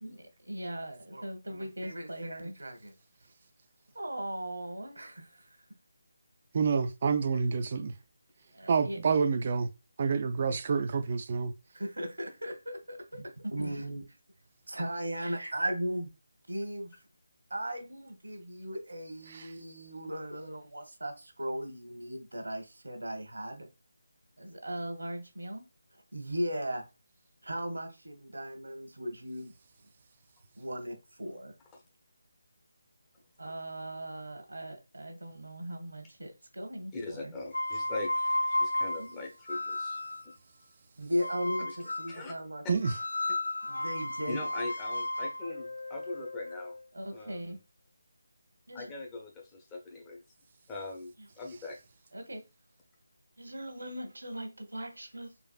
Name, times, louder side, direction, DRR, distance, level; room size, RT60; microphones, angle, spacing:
voice 1, 0.0-2.9 3.9-5.6 8.5-9.0 11.7-14.1 14.7-16.1 16.5-16.9 17.5-23.7 24.4-25.6 26.1-26.8 27.4-29.5 30.6-31.5 33.4-37.3 39.0-39.2 41.0-42.6 43.6-44.4 46.9-47.6 48.7-48.9 51.2-51.3 52.1-52.4 53.4-55.3, equal, 70° right, 1.0 m, -38 dB
voice 2, 6.5-7.9 8.7-9.7 10.0-11.5 19.3-19.5 42.7-42.9, right 5 dB, 35° right, 0.3 m, -28 dB
voice 3, 36.9-40.0 41.6-41.8 42.1-42.4 44.3-46.7 47.1-47.6 48.7-50.2 50.7-51.8, left 2 dB, 10° left, 0.6 m, -41 dB
sound 1, 37.5-40.3 41.2-42.2 42.8-46.8, left 1 dB, 60° left, 0.3 m, -34 dB
4.0 x 2.5 x 2.3 m
figure-of-eight pair, 155°, 0 cm